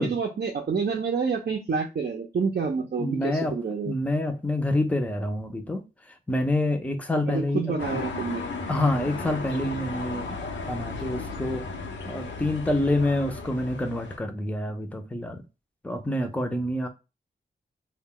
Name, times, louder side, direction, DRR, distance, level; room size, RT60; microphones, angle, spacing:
voice 1, 0.0-3.9 7.3-8.4, right 5 dB, 60° right, 0.5 m, -28 dB
voice 2, 3.0-3.5 3.9-5.8 6.3-8.1 8.7-10.4 10.7-11.7 12.0-15.4 15.8-16.9, left 1 dB, 5° left, 0.5 m, -27 dB
sound 1, 7.8-14.2, left 3 dB, 85° left, 0.7 m, -35 dB
2.2 x 2.1 x 3.7 m
wide cardioid pair, 100°, 19 cm